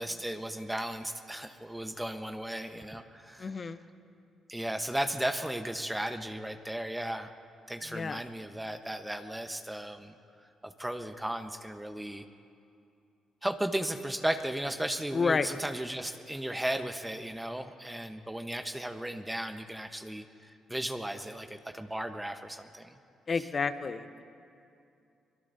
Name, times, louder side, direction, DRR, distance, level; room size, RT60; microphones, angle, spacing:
voice 1, 0.0-3.7 4.5-7.3 7.7-10.1 10.6-12.2 13.4-22.9 23.4-23.5, right 1 dB, 10° right, 6 dB, 1.0 m, -35 dB
voice 2, 3.4-3.8 7.9-8.2 15.1-15.5 23.3-24.2, left 5 dB, 45° left, 12 dB, 0.8 m, -30 dB
24.0 x 22.0 x 2.7 m, 2.5 s
hypercardioid pair, 45°, 0 cm